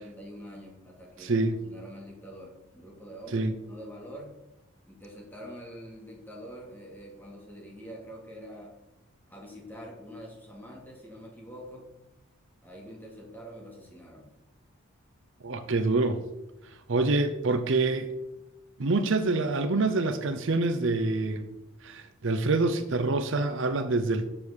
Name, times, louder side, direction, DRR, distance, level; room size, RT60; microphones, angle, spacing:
voice 1, 0.0-4.4 4.9-8.7 9.3-11.9 12.6-14.3, equal, 10° left, -2 dB, 2.4 m, -45 dB
voice 2, 1.2-1.6 3.3-3.5 15.4-16.2 16.9-18.1 18.8-21.4 21.8-24.2, right 3 dB, 60° right, 9 dB, 0.6 m, -26 dB
6.9 x 6.5 x 7.2 m, 0.96 s
head